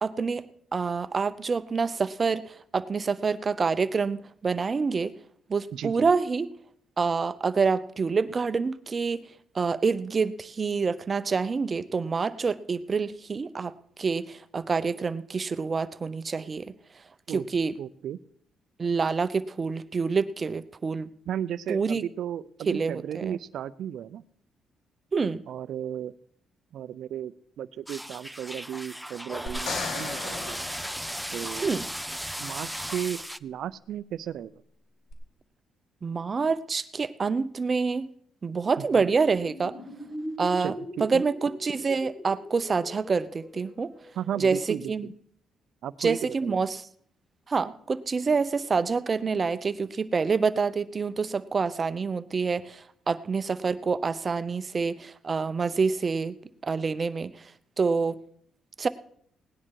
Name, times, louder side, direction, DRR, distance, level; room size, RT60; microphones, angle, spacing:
voice 1, 0.0-0.4 0.7-5.1 5.5-6.5 7.0-9.2 9.5-13.7 14.0-16.7 17.3-17.7 18.8-21.1 21.7-22.0 22.7-23.4 25.1-25.4 31.6-31.8 36.0-38.1 38.4-39.8 40.4-40.7 41.0-43.9 44.4-45.1 46.0-46.9 47.5-56.3 56.6-57.4 57.8-58.2 58.8-58.9, right 5 dB, 35° right, 14 dB, 0.7 m, -27 dB
voice 2, 5.7-6.1 17.3-17.4 17.8-18.2 21.3-24.2 25.5-26.1 26.7-30.6 31.3-31.7 32.4-34.5 38.8-39.1 40.6-41.2 44.2-45.1 45.8-46.6, right 10 dB, 70° right, 17 dB, 0.5 m, -35 dB
sound 1, 27.9-33.4, equal, ahead, 0.5 m, -36 dB
sound 2, 29.5-31.8 35.1-35.2, left 4 dB, 60° left, 2.2 m, -36 dB
sound 3, 39.4-44.6, equal, 25° left, 2.3 m, -41 dB
17.5 x 10.0 x 4.7 m, 0.65 s
cardioid pair, 90°, 0 cm